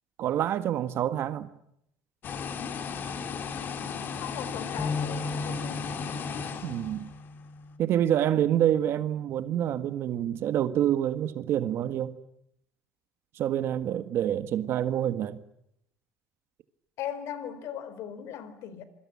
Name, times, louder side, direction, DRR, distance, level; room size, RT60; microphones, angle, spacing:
voice 1, 0.2-1.5 6.6-7.1 7.8-12.1 13.3-15.4, right 11 dB, 45° right, 1.7 m, -27 dB
sound 1, 2.2-7.4, left 6 dB, 35° left, 2.9 m, -36 dB
voice 2, 4.1-5.9 17.0-18.8, left 9 dB, 55° left, 4.2 m, -38 dB
sound 2, 4.8-11.0, left 3 dB, 10° left, 1.8 m, -39 dB
27.0 x 24.0 x 8.6 m
cardioid pair, 150°, 5 cm